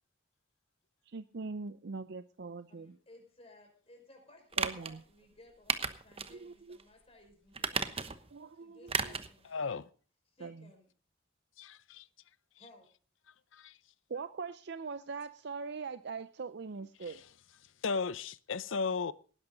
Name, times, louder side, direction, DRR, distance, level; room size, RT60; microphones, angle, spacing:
voice 1, 1.1-3.0 4.6-5.0 6.3-6.8 8.3-9.1 10.4-10.7 14.1-17.2, right 4 dB, 55° right, 0.5 m, -42 dB
voice 2, 2.7-8.1 8.5-9.8 10.3-10.9 12.6-12.9, left 1 dB, 30° left, 5.5 m, -59 dB
sound 1, 4.5-4.9 5.7-6.3 6.7-6.8 7.5-8.3 8.9-9.3 9.6-9.7, right 5 dB, 30° right, 1.0 m, -34 dB
voice 3, 9.5-9.9 11.6-12.0 13.5-13.7 17.1-17.2 17.8-19.1, left 4 dB, 70° left, 0.7 m, -35 dB
18.5 x 11.0 x 3.9 m
head